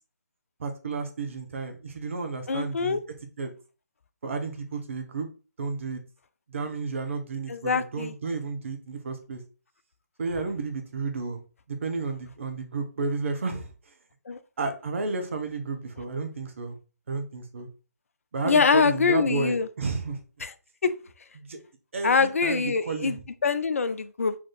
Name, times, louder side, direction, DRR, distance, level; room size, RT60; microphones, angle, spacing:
voice 1, 0.6-3.0 3.4-3.5 4.2-5.3 5.6-6.0 6.5-9.4 10.2-11.4 11.7-13.7 14.6-16.8 17.1-17.7 18.3-20.2 21.4-21.6 21.9-23.2, right 4 dB, 50° right, 1.0 m, -32 dB
voice 2, 2.5-3.0 7.5-8.1 14.3-14.4 18.4-19.7 20.4-20.5 20.8-20.9 22.0-24.4, left 5 dB, 55° left, 0.5 m, -24 dB
4.5 x 3.0 x 3.9 m
figure-of-eight pair, 145°, 9 cm